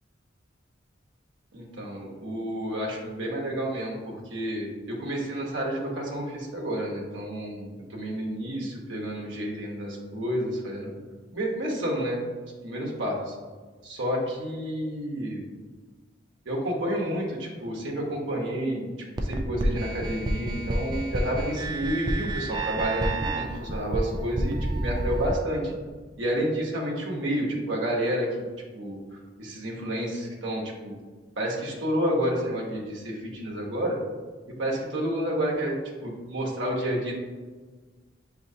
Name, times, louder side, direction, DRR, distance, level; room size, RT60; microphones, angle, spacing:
voice 1, 1.5-11.0 11.3-12.2 12.6-13.3 13.8-15.5 16.5-18.9 19.2-25.7 26.2-28.5 28.7-30.9 31.4-34.0 34.6-35.7 36.0-37.1, equal, 85° right, -2 dB, 0.9 m, -30 dB
sound 1, 19.2-25.3, right 1 dB, 25° right, 0.3 m, -29 dB
6.3 x 2.8 x 2.7 m, 1.4 s
head